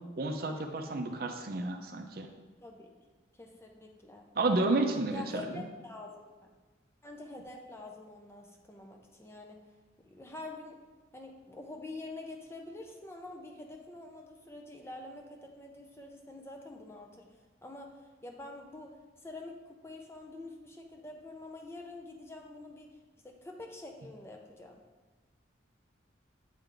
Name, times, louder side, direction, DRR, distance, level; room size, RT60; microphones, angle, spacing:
voice 1, 0.2-2.3 4.4-5.6, right 2 dB, 50° right, 5 dB, 0.5 m, -31 dB
voice 2, 2.6-2.9 3.4-4.3 5.1-6.3 7.0-9.6 10.0-10.8 11.1-17.3 17.6-18.9 19.2-22.9 23.2-24.8, left 2 dB, 15° left, 2 dB, 0.5 m, -46 dB
8.2 x 3.4 x 3.8 m, 1.3 s
head